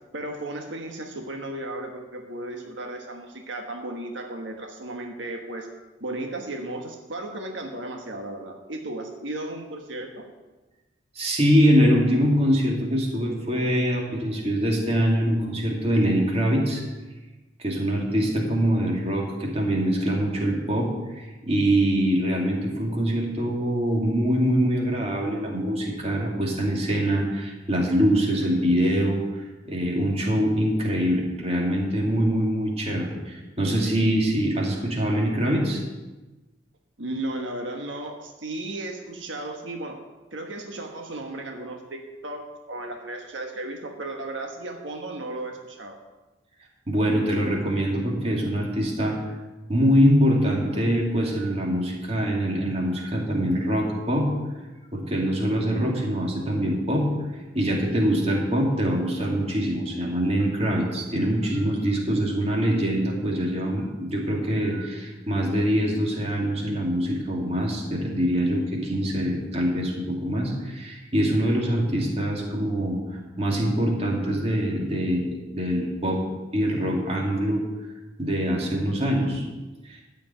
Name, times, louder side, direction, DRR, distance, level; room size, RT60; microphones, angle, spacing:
voice 1, 0.1-5.7 6.0-10.3 37.0-40.0 40.3-46.0, right 2 dB, 85° right, 2 dB, 1.4 m, -35 dB
voice 2, 11.2-16.8 17.6-35.8 46.9-49.2 49.7-54.4 54.9-57.1 57.5-76.2 76.5-77.6 78.2-79.4 79.8-80.0, equal, 35° right, -2 dB, 2.5 m, -24 dB
14.0 x 5.1 x 9.0 m, 1.2 s
head